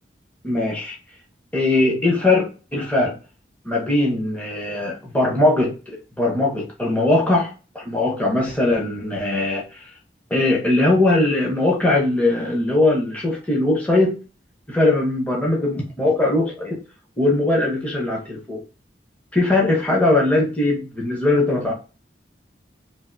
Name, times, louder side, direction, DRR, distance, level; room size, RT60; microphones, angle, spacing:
voice 1, 0.4-1.0 1.5-3.1 3.6-9.9 10.3-14.2 14.7-16.8 17.2-18.6 19.3-21.7, left 2 dB, 10° left, -3 dB, 0.6 m, -20 dB
3.2 x 2.5 x 2.5 m, 0.34 s
head